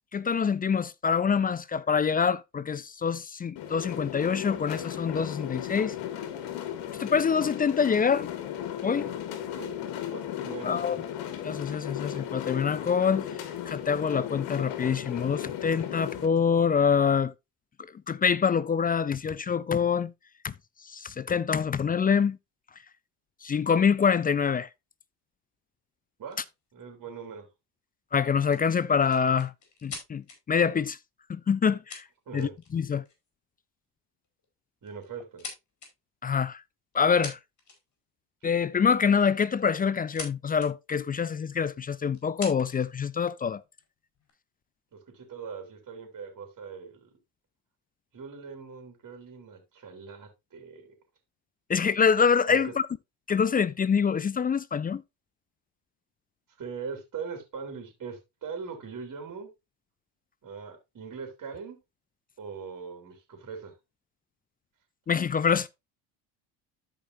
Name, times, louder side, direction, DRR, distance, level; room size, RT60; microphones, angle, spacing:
voice 1, 0.1-6.0 7.0-8.3 8.8-9.1 10.6-11.0 11.4-17.3 18.1-20.1 20.4-20.5 20.9-22.4 23.4-24.7 28.1-29.5 29.8-31.0 31.3-32.0 32.3-33.0 36.2-36.6 36.9-37.4 38.4-43.6 51.7-52.7 53.3-55.0 65.1-65.7, left 6 dB, 20° left, 0.4 m, -25 dB
sound 1, 3.6-16.3, left 10 dB, 65° left, 1.8 m, -36 dB
voice 2, 10.1-11.0 26.2-26.4 26.7-27.5 32.3-32.6 34.8-35.4 44.9-47.1 48.1-50.9 52.5-52.7 56.6-59.5 60.4-61.8 62.4-63.7, right 5 dB, 40° right, 3.4 m, -41 dB
sound 2, 26.3-26.5 28.5-30.4 31.5-31.6 31.9-32.7 33.1-33.3 34.2-34.5 34.9-35.9 36.9-37.0 37.2-38.0 39.5-40.3 40.6-40.7 41.4-41.5 42.1-42.9 43.6-44.3, left 4 dB, 35° left, 4.7 m, -43 dB
13.5 x 5.1 x 2.7 m
supercardioid pair, 80°, 47 cm